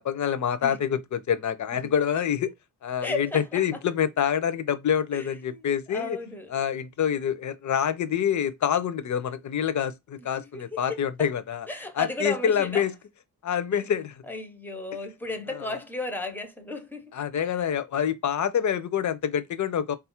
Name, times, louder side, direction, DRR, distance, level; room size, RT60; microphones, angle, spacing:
voice 1, 0.0-2.5 2.8-6.2 6.5-11.7 12.0-12.9 13.4-14.1 17.1-20.0, left 8 dB, 50° left, 0.5 m, -26 dB
voice 2, 3.0-3.8 5.1-6.6 10.2-11.3 11.7-12.9 13.7-13.8 14.3-17.7, left 2 dB, 5° left, 0.6 m, -35 dB
3.7 x 2.4 x 4.2 m
wide cardioid pair, 175°, 37 cm